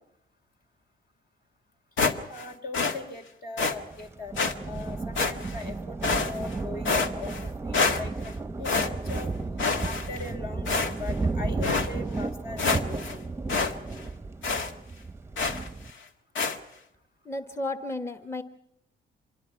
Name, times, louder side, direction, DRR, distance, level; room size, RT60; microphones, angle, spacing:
sound 1, 2.0-2.5 2.7-3.0 3.6-3.8 4.4-4.5 5.2-5.6 6.0-6.5 6.9-7.5 7.7-8.3 8.6-9.3 9.6-10.3 10.7-11.2 11.6-11.9 12.3-12.4 12.6-13.2 13.5-13.7 14.0-14.1 14.4-14.7 15.4-15.7 16.4-16.6, left 4 dB, 75° left, 1.7 m, -27 dB
voice 1, 2.3-4.3 4.7-7.3 7.6-9.3 9.8-13.2, left 3 dB, 50° left, 4 dB, 4.1 m, -40 dB
Thunder, 3.6-15.9, right 3 dB, 10° right, 0.9 m, -34 dB
voice 2, 17.3-18.4, left 2 dB, 15° left, 8 dB, 1.2 m, -33 dB
26.0 x 21.5 x 5.8 m, 0.81 s
cardioid pair, 90°, 20 cm